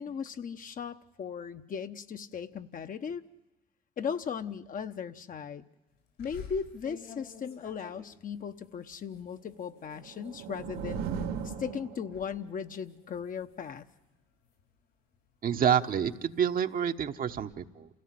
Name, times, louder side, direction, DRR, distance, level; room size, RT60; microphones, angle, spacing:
voice 1, 0.0-3.2 4.0-5.6 6.2-11.1 11.4-13.9, left 7 dB, 50° left, 8 dB, 1.1 m, -37 dB
sound 1, 6.2-11.6 11.9-12.3 12.7-14.7 15.3-17.5, left 6 dB, 85° left, 7.0 m, -52 dB
sound 2, 9.7-12.5, right 7 dB, 85° right, 2.8 m, -38 dB
voice 2, 15.4-17.9, right 8 dB, 50° right, 7 dB, 1.2 m, -28 dB
28.5 x 16.5 x 7.6 m, 1.0 s
hypercardioid pair, 60°, 18 cm